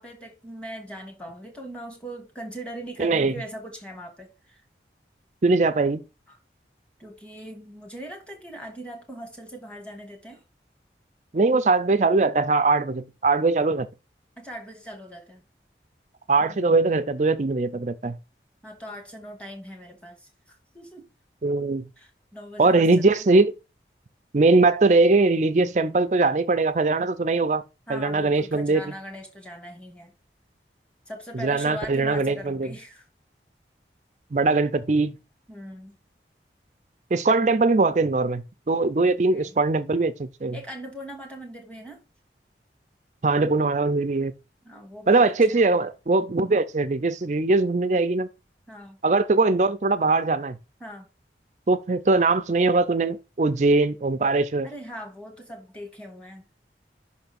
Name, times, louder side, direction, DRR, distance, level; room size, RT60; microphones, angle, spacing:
voice 1, 0.0-4.6 6.3-6.4 7.0-10.4 14.4-15.4 16.4-16.6 18.6-21.0 22.0-23.3 27.9-30.1 31.1-33.1 35.5-36.0 39.0-39.6 40.5-42.0 44.6-45.6 48.7-49.0 50.8-51.1 54.6-56.4, equal, 5° left, 1.5 m, -40 dB
voice 2, 3.0-3.3 5.4-6.0 11.3-13.9 16.3-18.2 21.4-21.9 22.6-23.5 24.3-27.6 27.9-28.9 31.3-32.7 34.3-35.1 37.1-40.6 43.2-44.3 45.1-48.3 49.0-50.6 51.7-54.7, right 3 dB, 40° right, 0.5 m, -21 dB
5.8 x 3.5 x 5.7 m
head